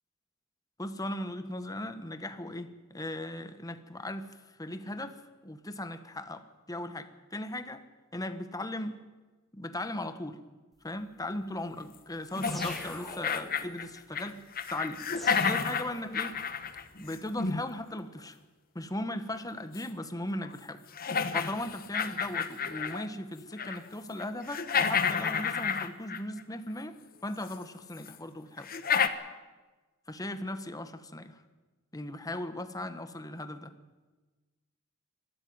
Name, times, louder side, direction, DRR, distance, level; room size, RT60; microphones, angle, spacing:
voice 1, 0.8-4.3 4.6-5.2 5.4-7.8 8.1-9.0 9.5-10.4 10.8-14.4 14.7-15.0 15.4-16.4 17.0-18.4 18.7-20.8 21.3-27.0 27.2-28.7 30.1-31.4 31.9-33.7, left 1 dB, 15° left, 10 dB, 1.3 m, -38 dB
sound 1, 12.4-14.3 14.6-17.6 19.8-19.9 20.4-20.5 20.9-23.1 23.4-23.9 24.2-26.4 27.5-27.6 28.1-28.2 28.6-29.1, left 6 dB, 45° left, 1.1 m, -30 dB
sound 2, 12.4-13.7 15.2-16.5, equal, ahead, 3.5 m, -44 dB
23.0 x 13.5 x 9.6 m, 1.3 s
head